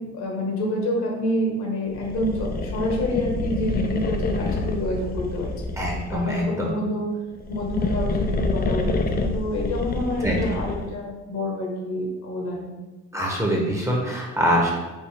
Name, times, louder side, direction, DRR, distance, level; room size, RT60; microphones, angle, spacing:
voice 1, 0.0-5.7 6.1-7.1 7.5-12.7, left 1 dB, 65° left, -1 dB, 1.5 m, -28 dB
sound 1, 1.9-6.4 7.3-11.0, left 2 dB, 30° left, 0.5 m, -27 dB
voice 2, 5.8-6.7 10.2-10.3 13.1-14.7, equal, 10° right, -2 dB, 0.9 m, -24 dB
5.3 x 2.6 x 3.3 m, 1.1 s
cardioid pair, 90°, 30 cm